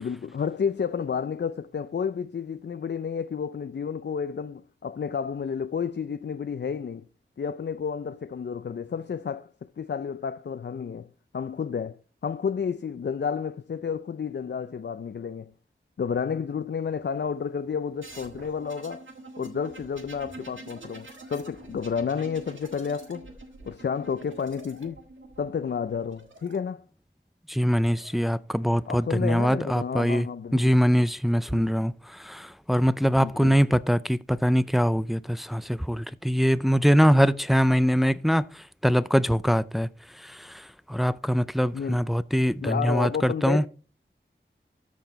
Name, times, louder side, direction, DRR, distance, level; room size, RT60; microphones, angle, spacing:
voice 1, 0.0-7.1 7.4-11.1 11.3-15.5 16.0-19.1 19.4-23.3 23.7-25.0 25.4-26.8 28.9-30.7 31.5-31.7 33.1-33.6 41.7-42.1 42.6-43.7, left 6 dB, 60° left, 0.4 m, -31 dB
sound 1, 18.0-26.6 27.7-28.3, right 2 dB, 75° right, 1.6 m, -46 dB
voice 2, 27.5-30.3 30.5-38.5 38.8-39.9 40.2-43.6, equal, ahead, 0.5 m, -23 dB
13.0 x 4.7 x 4.1 m
wide cardioid pair, 50°, 20 cm